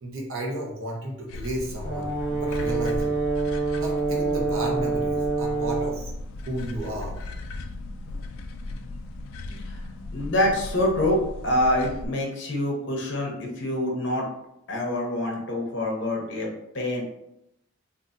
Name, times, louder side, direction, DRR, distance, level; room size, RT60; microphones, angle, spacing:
voice 1, 0.0-3.2 3.7-6.1 6.4-7.1, right 1 dB, 80° right, -2 dB, 0.8 m, -33 dB
sound 1, 1.3-12.1, left 2 dB, 80° left, 0.3 m, -36 dB
Brass instrument, 1.8-6.0, right 4 dB, 15° right, 1.3 m, -26 dB
voice 2, 10.1-14.3 14.7-17.1, left 1 dB, 55° left, 0 dB, 0.8 m, -26 dB
3.8 x 2.5 x 2.5 m, 0.82 s
head